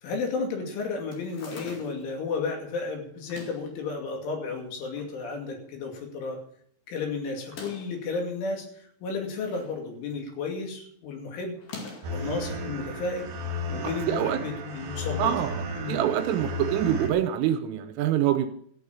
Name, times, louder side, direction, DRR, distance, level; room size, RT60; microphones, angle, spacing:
voice 1, 0.0-6.4 6.9-8.7 9.0-11.6 12.1-13.3 13.7-15.3 15.7-16.0, left 4 dB, 70° left, 2 dB, 4.8 m, -33 dB
sound 1, 1.1-2.1 3.2-3.7 4.5-5.2 5.5-5.6 5.8-5.9 7.4-8.0 9.0-9.8 10.1-10.4 11.6-12.2, left 3 dB, 55° left, 3.4 m, -43 dB
sound 2, 12.0-17.1, equal, 50° right, 3.1 m, -34 dB
voice 2, 13.8-14.4 15.2-15.6 15.9-18.5, right 10 dB, 85° right, 7 dB, 3.3 m, -25 dB
14.5 x 6.9 x 8.5 m, 0.64 s
omnidirectional pair, 5.9 m